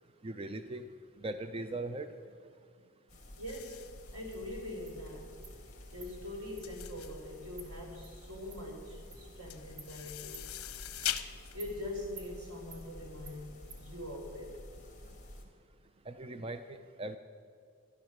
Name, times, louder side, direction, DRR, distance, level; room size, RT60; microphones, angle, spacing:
voice 1, 0.2-0.9 1.2-2.1 16.1-17.2, right 2 dB, 25° right, 9 dB, 0.4 m, -39 dB
sound 1, 3.1-15.4, left 1 dB, 35° left, 2.3 m, -51 dB
voice 2, 3.3-3.8 4.1-5.4 5.9-10.5 11.5-14.6, left 1 dB, 85° right, -1 dB, 3.8 m, -43 dB
sound 2, 3.5-13.1, left 12 dB, 80° left, 0.7 m, -43 dB
Insect, 4.3-4.4 4.9-5.0 5.4-5.6 6.0-6.1 6.6-6.7 7.0-7.1 7.6-7.7 8.0-8.1 8.5-8.6 9.1-9.2 9.8-9.9 10.3-10.5 11.0-11.2 11.6-11.7 12.2-12.3 12.7-12.8 13.3-13.4 13.7-13.8, right 5 dB, 55° right, 1.4 m, -51 dB
13.5 x 11.0 x 6.5 m, 2.2 s
head